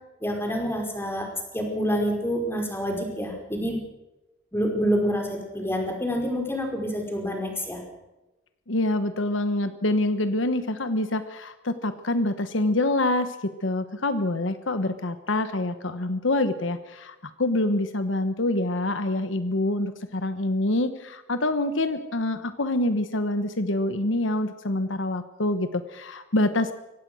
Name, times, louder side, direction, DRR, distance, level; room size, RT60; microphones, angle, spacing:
voice 1, 0.2-1.3 1.5-3.8 4.5-7.8, equal, 15° left, 2 dB, 5.0 m, -27 dB
voice 2, 8.7-26.7, left 2 dB, 80° left, 10 dB, 1.2 m, -26 dB
24.5 x 17.5 x 6.3 m, 1.0 s
head